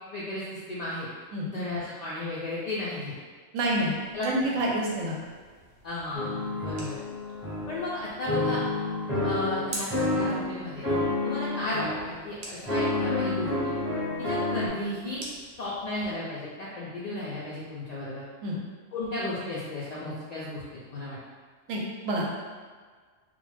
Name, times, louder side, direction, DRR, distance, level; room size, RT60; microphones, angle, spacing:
voice 1, 0.1-1.1 1.5-3.1 4.1-4.3 5.8-6.3 6.6-7.0 7.7-8.6 9.2-10.9 11.2-13.7 14.2-15.2 15.6-18.2 18.9-20.6 20.9-21.2, left 1 dB, 80° left, -7 dB, 0.3 m, -34 dB
voice 2, 3.5-3.9 4.2-5.2 18.4-18.6 21.7-22.4, right 1 dB, 90° right, -2 dB, 1.0 m, -28 dB
sound 1, 3.8-16.2, right 1 dB, 65° right, 0.8 m, -47 dB
sound 2, 6.1-7.9 8.3-10.5 10.8-12.1 12.7-14.7, left 2 dB, 15° right, 0.6 m, -29 dB
2.4 x 2.1 x 3.1 m, 1.5 s
omnidirectional pair, 1.3 m